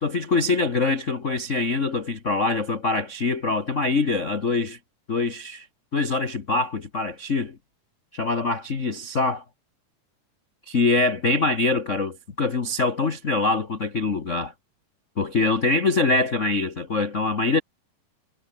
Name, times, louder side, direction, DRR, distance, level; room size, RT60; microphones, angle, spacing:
voice 1, 0.0-4.8 5.1-5.7 5.9-7.6 8.1-9.4 10.7-14.5 15.2-17.6, left 3 dB, 90° left, 0.6 m, -24 dB
omnidirectional pair, 3.8 m